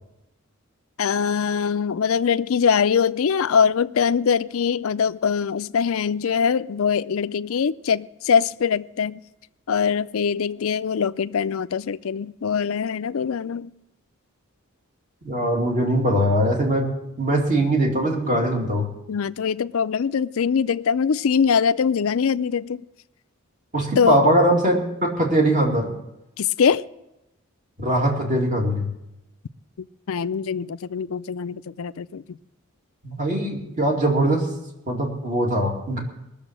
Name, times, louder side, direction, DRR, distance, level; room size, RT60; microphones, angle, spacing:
voice 1, 1.0-9.2 9.7-13.7 19.1-22.8 24.0-24.2 26.4-26.9 29.8-32.4, left 6 dB, 65° left, 0.4 m, -22 dB
voice 2, 15.2-16.9 17.2-18.9 23.7-25.9 27.8-28.9 33.0-34.5 34.9-36.0, right 1 dB, 35° right, 2.6 m, -21 dB
20.0 x 6.9 x 7.5 m
head